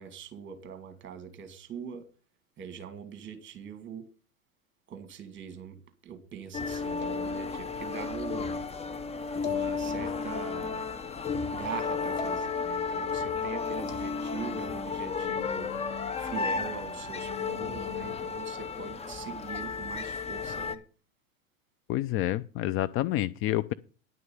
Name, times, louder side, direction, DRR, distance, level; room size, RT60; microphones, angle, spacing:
voice 1, 0.0-2.1 2.6-4.1 4.9-5.8 6.0-8.6 9.4-10.8 11.5-15.7 16.2-20.8, right 7 dB, 30° right, 2.5 m, -42 dB
sound 1, 6.5-20.8, left 5 dB, 15° left, 0.9 m, -33 dB
sound 2, 7.0-7.8 9.4-10.4 12.2-12.8 13.9-14.1, left 9 dB, 75° left, 1.8 m, -38 dB
voice 2, 21.9-23.7, left 15 dB, 35° left, 0.5 m, -28 dB
10.5 x 6.5 x 7.1 m
hypercardioid pair, 95°, 40 cm